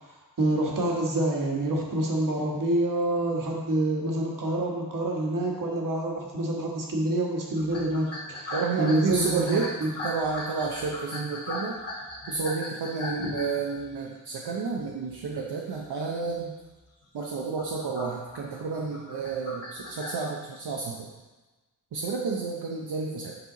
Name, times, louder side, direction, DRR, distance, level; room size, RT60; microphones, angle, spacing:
voice 1, 0.1-9.9, right 1 dB, 50° right, -1 dB, 1.5 m, -27 dB
sound 1, 7.6-14.2 14.8-15.2 15.5-15.9 16.3-16.4 17.0-20.2, left 2 dB, 35° left, 1.7 m, -38 dB
voice 2, 8.5-9.7 10.0-11.8 12.3-16.5 17.1-21.1 21.9-23.3, right 4 dB, 65° right, -1 dB, 0.8 m, -31 dB
7.9 x 5.5 x 3.9 m, 1.2 s
wide cardioid pair, 150°, 42 cm